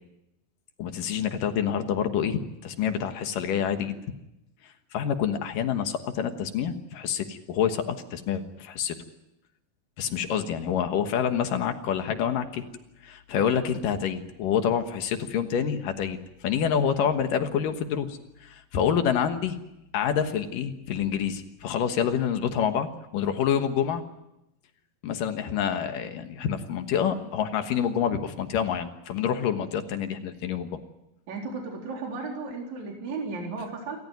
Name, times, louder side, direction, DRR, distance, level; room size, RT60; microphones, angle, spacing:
voice 1, 0.8-4.0 4.6-9.0 10.0-12.6 13.0-19.6 19.9-24.0 25.0-30.8, left 8 dB, 70° left, 7 dB, 2.8 m, -27 dB
voice 2, 31.3-34.0, right 4 dB, 50° right, 1 dB, 5.0 m, -34 dB
27.5 x 14.0 x 9.5 m, 0.89 s
omnidirectional pair, 4.2 m